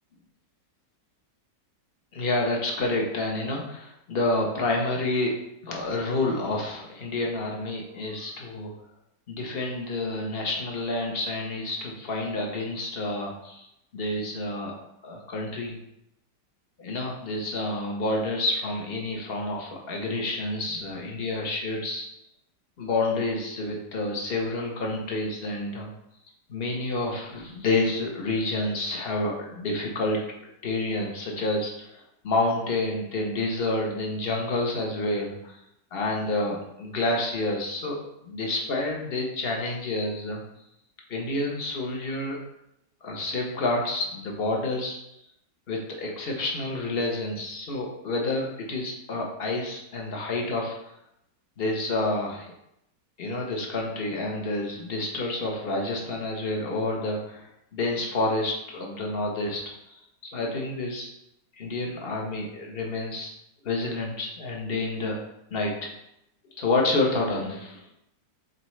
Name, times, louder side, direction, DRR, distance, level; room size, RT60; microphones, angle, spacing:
voice 1, 2.1-5.3 5.6-8.7 9.3-13.7 13.9-14.7 15.0-15.8 16.8-22.1 22.8-25.9 26.5-30.3 30.6-35.6 35.9-38.0 38.2-40.4 41.1-42.4 43.0-45.0 45.7-50.8 51.6-52.5 53.2-59.6 59.9-61.1 61.6-63.3 63.6-65.2 65.5-65.9 66.6-67.8, left 2 dB, 40° left, 0 dB, 1.2 m, -29 dB
7.4 x 4.2 x 3.2 m, 0.81 s
omnidirectional pair, 1.9 m